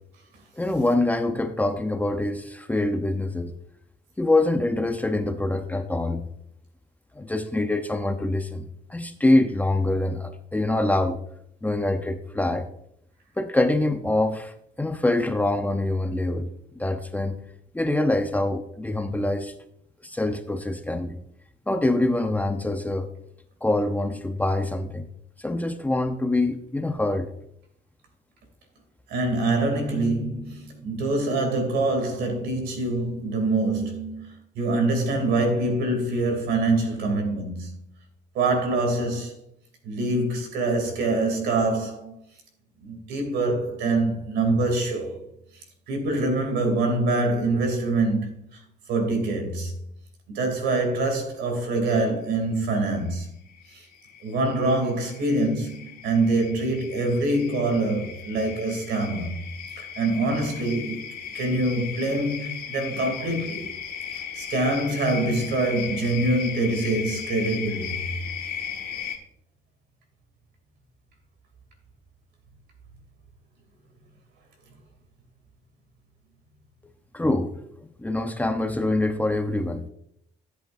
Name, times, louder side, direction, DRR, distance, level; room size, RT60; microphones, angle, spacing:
voice 1, 0.6-3.5 4.2-6.3 7.2-11.2 11.6-12.7 13.4-16.5 16.7-17.4 17.7-19.5 20.0-21.2 21.7-23.1 23.6-25.1 25.4-27.3 77.1-77.5 78.0-79.9, left 2 dB, 10° left, 0.8 m, -25 dB
voice 2, 29.1-37.9 38.3-39.3 39.8-42.2 42.8-45.3 45.9-48.6 48.9-49.7 50.3-53.3 53.7-53.8 54.2-59.4 59.8-63.7 64.3-68.1, right 2 dB, 80° right, 2.9 m, -25 dB
sound 1, 53.0-53.1 53.5-69.2, left 8 dB, 65° left, 1.9 m, -36 dB
13.0 x 8.0 x 2.6 m
cardioid pair, 110°, 17 cm